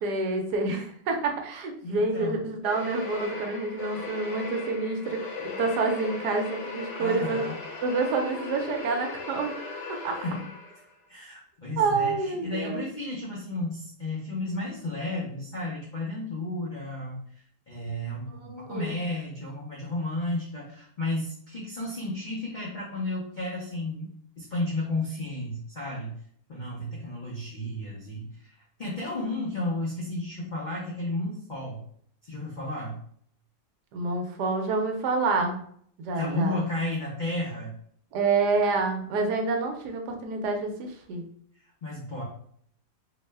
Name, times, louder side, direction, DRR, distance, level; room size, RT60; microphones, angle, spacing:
voice 1, 0.0-7.5 7.8-9.5 10.0-10.2 11.8-12.8 18.3-19.0 33.9-35.6 36.0-36.6 38.1-41.2, right 3 dB, 80° right, 4 dB, 1.2 m, -28 dB
voice 2, 1.8-2.4 7.0-7.6 10.2-10.4 11.1-26.1 26.5-31.8 32.2-33.0 36.1-37.7 41.8-42.2, left 2 dB, 80° left, -5 dB, 0.4 m, -33 dB
sound 1, 2.6-10.9, left 4 dB, 60° left, 0.9 m, -38 dB
3.0 x 2.1 x 3.2 m, 0.62 s
omnidirectional pair, 1.8 m